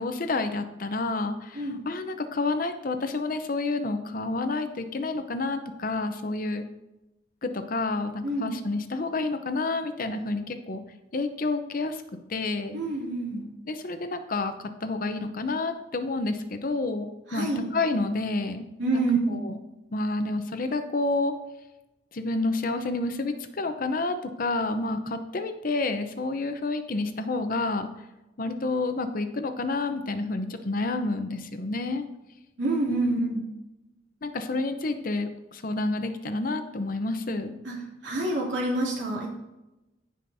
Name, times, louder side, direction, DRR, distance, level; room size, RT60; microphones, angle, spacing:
voice 1, 0.0-6.7 7.4-10.8 11.1-12.0 12.3-12.8 13.7-14.5 14.8-19.0 19.3-19.6 19.9-21.3 22.1-27.9 28.4-32.1 32.9-33.2 34.2-37.5, left 2 dB, 50° left, 8 dB, 0.7 m, -29 dB
voice 2, 8.2-8.5 12.7-13.4 17.3-17.6 18.8-19.4 32.6-33.4 37.6-37.7 38.0-39.3, right 2 dB, 80° right, -4 dB, 2.6 m, -27 dB
15.0 x 5.1 x 2.7 m, 0.97 s
head